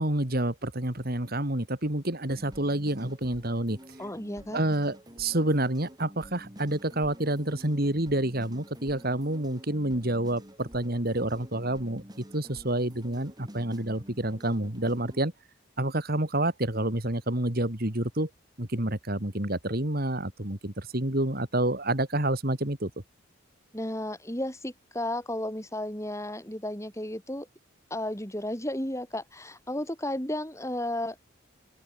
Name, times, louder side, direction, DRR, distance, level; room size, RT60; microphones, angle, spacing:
voice 1, 0.0-3.8 4.5-12.0 12.3-15.3 15.8-18.3 18.6-22.9, right 1 dB, 45° right, 3.0 m, -28 dB
sound 1, 2.3-15.2, equal, 20° right, 7.7 m, -49 dB
voice 2, 4.0-4.6 23.7-27.5 27.9-31.2, left 1 dB, 15° left, 5.7 m, -33 dB
open air
head